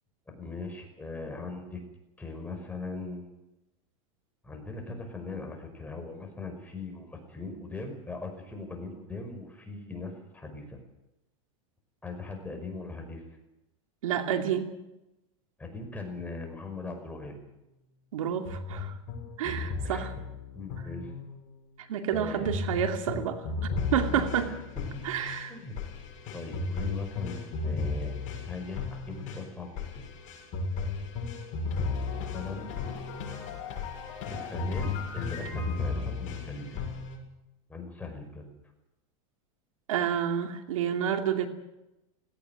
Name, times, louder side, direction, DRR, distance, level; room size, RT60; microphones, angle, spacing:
voice 1, 0.3-1.8 2.2-3.3 4.4-10.8 12.0-13.2 15.6-17.3 19.8-20.1 20.5-21.1 22.1-22.5 24.0-24.6 25.5-25.7 26.3-28.2 28.5-30.1 31.6-32.8 34.3-36.8 37.7-38.4, left 3 dB, 10° left, 3 dB, 5.6 m, -40 dB
voice 2, 14.0-14.7 18.1-18.9 19.4-20.1 21.8-23.5 23.9-24.5 25.0-25.5 39.9-41.5, right 9 dB, 85° right, 6 dB, 2.5 m, -29 dB
sound 1, 18.5-21.6 22.4-37.2, left 4 dB, 50° left, 7.3 m, -34 dB
17.5 x 17.5 x 9.2 m, 0.94 s
supercardioid pair, 130°, 17 cm